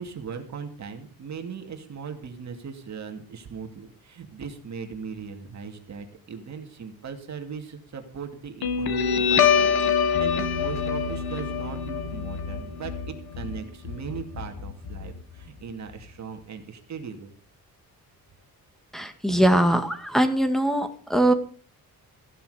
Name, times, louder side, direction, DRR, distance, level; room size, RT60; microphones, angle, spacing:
voice 1, 0.0-17.3, right 6 dB, 50° right, 5 dB, 2.6 m, -38 dB
Guitar, 8.6-15.6, left 7 dB, 80° left, 2.0 m, -25 dB
voice 2, 18.9-21.3, right 1 dB, ahead, 8 dB, 2.0 m, -21 dB
15.5 x 12.5 x 5.1 m, 0.41 s
wide cardioid pair, 165°, 36 cm